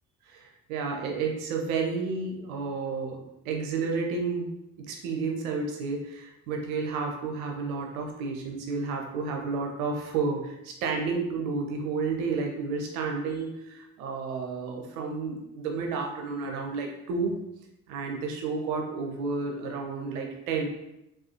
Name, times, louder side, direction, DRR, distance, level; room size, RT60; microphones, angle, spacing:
voice 1, 0.3-3.2 3.4-17.3 17.9-20.7, right 4 dB, 70° right, 1 dB, 0.8 m, -31 dB
4.8 x 2.7 x 2.7 m, 0.89 s
figure-of-eight pair, 40°, 45 cm